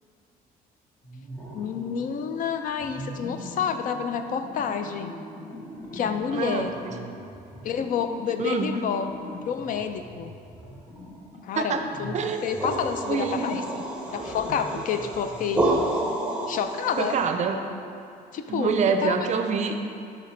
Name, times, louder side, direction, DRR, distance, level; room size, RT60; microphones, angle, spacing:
sound 1, 1.0-2.4 2.8-16.7, equal, 15° left, 1.4 m, -42 dB
voice 1, 1.5-5.1 5.9-6.7 7.6-9.1 9.5-10.3 11.4-13.8 14.1-15.7 15.9-16.0 16.5-17.2 18.3-19.2, left 7 dB, 55° left, 8 dB, 0.4 m, -29 dB
voice 2, 6.3-7.0 8.4-8.8 11.6-11.8 12.1-12.4 13.1-13.6 17.0-17.6 18.5-19.8, right 5 dB, 45° right, 6 dB, 0.5 m, -26 dB
sound 2, 12.2-17.2, right 2 dB, 5° right, 0.8 m, -29 dB
6.6 x 5.1 x 3.2 m, 2.5 s
cardioid pair, 110°, 17 cm